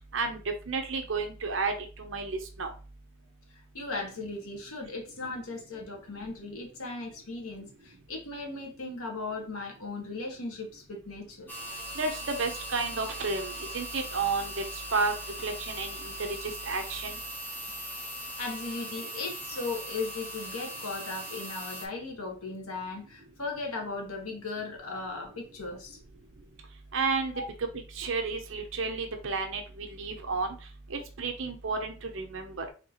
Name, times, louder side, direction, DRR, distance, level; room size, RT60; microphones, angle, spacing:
voice 1, 0.1-2.7 12.0-14.6 14.9-15.1 15.4-16.1 16.4-17.2 26.9-27.3 27.9-30.6 30.9-32.7, right 4 dB, 65° right, 0.6 m, -32 dB
voice 2, 3.7-11.5 18.2-26.0 27.3-27.5, left 3 dB, 85° left, 1.1 m, -37 dB
sound 1, 11.5-21.9, equal, 10° left, 0.6 m, -40 dB
4.4 x 2.8 x 2.9 m
head